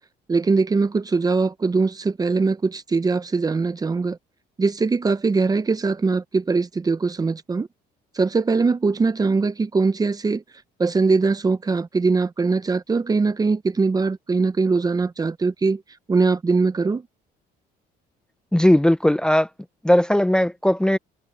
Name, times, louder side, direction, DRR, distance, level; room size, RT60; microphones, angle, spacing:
voice 1, 0.3-4.2 4.6-7.7 8.2-10.4 10.8-15.8 16.1-17.0, right 4 dB, 20° right, 0.9 m, -21 dB
voice 2, 18.5-19.5 19.8-21.0, left 1 dB, 5° left, 0.8 m, -18 dB
cardioid pair, 110°, 17 cm